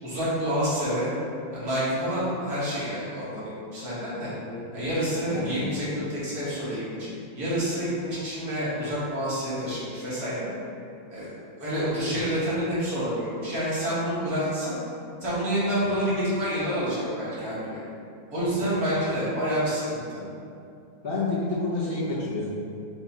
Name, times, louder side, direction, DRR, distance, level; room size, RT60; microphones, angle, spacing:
voice 1, 0.0-1.1 1.5-4.3 4.7-7.1 7.3-10.5 11.1-11.3 11.6-14.7 15.2-17.8 18.3-20.2, equal, 80° right, -10 dB, 2.1 m, -28 dB
voice 2, 4.5-4.8 5.3-5.7 18.3-18.7 21.0-22.5, left 3 dB, 50° left, -9 dB, 0.8 m, -30 dB
5.5 x 2.3 x 4.1 m, 2.5 s
omnidirectional pair, 1.6 m